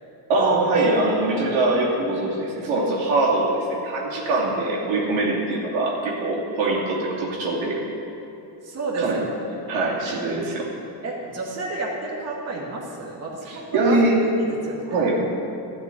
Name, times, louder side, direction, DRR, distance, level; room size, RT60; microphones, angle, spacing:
voice 1, 0.3-7.8 9.0-9.3 9.7-10.7 13.5-14.2 14.9-15.2, right 2 dB, 80° right, -4 dB, 2.9 m, -23 dB
voice 2, 8.6-9.2 9.5-9.7 11.0-14.0 14.4-15.1, right 3 dB, 35° right, -3 dB, 2.3 m, -31 dB
12.5 x 5.4 x 9.1 m, 2.9 s
supercardioid pair, 90°, 45 cm